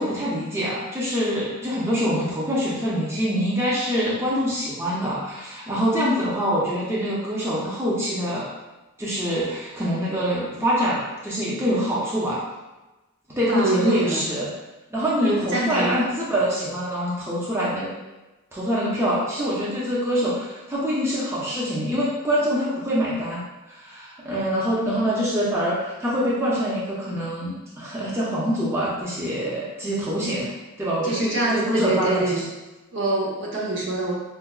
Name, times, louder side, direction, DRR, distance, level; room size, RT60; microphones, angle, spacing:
voice 1, 0.0-8.5 9.0-12.4 13.3-14.5 14.9-17.9 18.5-30.5 30.8-32.4, equal, 10° right, -7 dB, 0.5 m, -25 dB
voice 2, 13.5-14.2 15.2-16.0 31.0-32.4 32.9-34.1, right 2 dB, 60° right, -5 dB, 0.9 m, -25 dB
4.5 x 2.1 x 2.3 m, 1.1 s
head